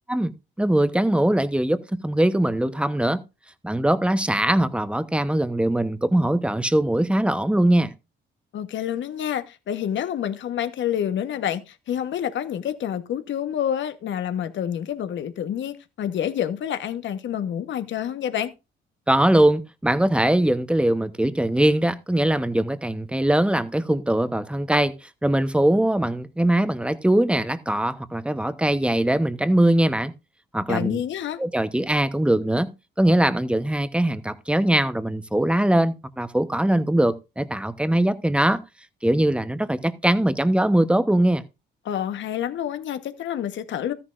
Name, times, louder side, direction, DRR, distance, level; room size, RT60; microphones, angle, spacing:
voice 1, 0.6-3.2 3.6-7.9 19.1-24.9 25.2-30.1 30.5-31.0 31.4-32.7 33.0-38.6 39.0-41.4, right 1 dB, 5° right, 0.9 m, -21 dB
voice 2, 8.5-18.5 30.7-31.4 41.8-43.9, left 9 dB, 70° left, 1.2 m, -28 dB
13.5 x 10.0 x 2.5 m
cardioid pair, 90°, 20 cm